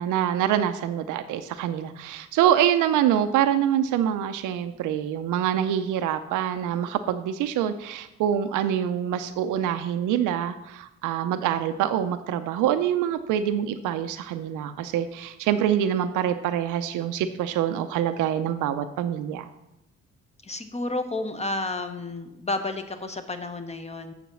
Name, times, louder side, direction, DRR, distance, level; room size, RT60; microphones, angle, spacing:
voice 1, 0.0-19.5, right 10 dB, 85° right, 9 dB, 0.6 m, -25 dB
voice 2, 20.4-24.1, left 2 dB, 20° left, 8 dB, 1.0 m, -31 dB
7.0 x 6.7 x 6.1 m, 0.91 s
cardioid pair, 90°, 30 cm